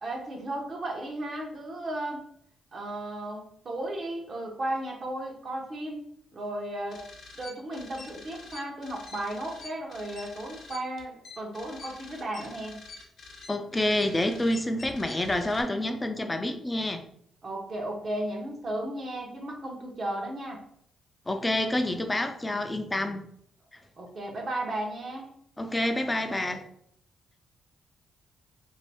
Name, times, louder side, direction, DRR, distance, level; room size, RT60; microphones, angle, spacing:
voice 1, 0.0-2.2 2.7-6.0 6.3-7.0 7.4-12.8 17.4-20.6 22.5-22.7 24.0-25.3, right 1 dB, 50° right, 0 dB, 0.9 m, -35 dB
sound 1, 6.9-15.6, left 3 dB, 65° left, 0.9 m, -46 dB
voice 2, 13.5-17.0 21.3-23.2 25.6-26.6, left 1 dB, 20° left, 6 dB, 0.5 m, -28 dB
2.7 x 2.5 x 3.3 m, 0.67 s
cardioid pair, 75°, 0 cm